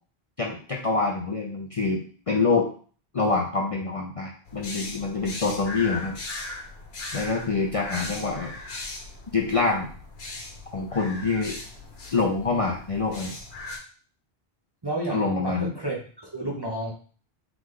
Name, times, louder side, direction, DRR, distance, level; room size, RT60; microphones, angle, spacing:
voice 1, 0.4-2.7 3.1-6.2 7.1-8.5 9.3-9.9 10.7-11.6 12.1-13.3 15.1-15.7, left 4 dB, 40° left, -1 dB, 0.5 m, -26 dB
sound 1, 4.5-13.8, left 2 dB, 70° left, 1.2 m, -38 dB
voice 2, 14.8-16.9, right 1 dB, 25° right, -2 dB, 0.7 m, -31 dB
3.8 x 3.5 x 3.2 m, 0.42 s
omnidirectional pair, 1.1 m